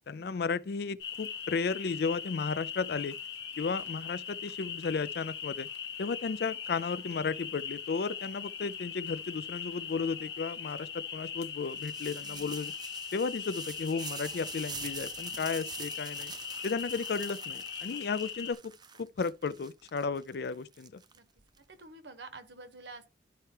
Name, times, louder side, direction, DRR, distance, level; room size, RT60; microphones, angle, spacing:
voice 1, 0.1-3.2 3.6-5.7 6.0-12.7 13.1-16.3 16.6-18.7 19.0-21.0, left 5 dB, 60° left, 0.4 m, -34 dB
sound 1, 1.0-18.5, left 7 dB, 80° left, 1.1 m, -40 dB
voice 2, 3.5-3.9 12.2-12.6 17.9-18.0 18.4-18.5 21.1-21.3 21.6-23.1, right 3 dB, 75° right, 1.2 m, -50 dB
sound 2, 11.7-21.6, right 7 dB, 25° right, 0.5 m, -46 dB
12.0 x 4.5 x 3.0 m
head